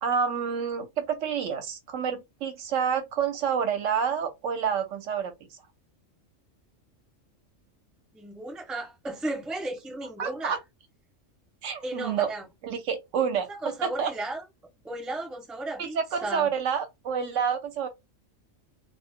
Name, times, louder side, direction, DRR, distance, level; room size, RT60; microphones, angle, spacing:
voice 1, 0.0-5.3 10.2-10.6 11.6-12.3 12.6-13.5 13.8-14.1 15.8-17.9, right 7 dB, 75° right, 0.9 m, -28 dB
voice 2, 8.1-10.6 11.8-12.4 13.5-14.4 14.8-16.5, right 2 dB, ahead, 0.5 m, -35 dB
2.4 x 2.0 x 3.4 m
omnidirectional pair, 1.3 m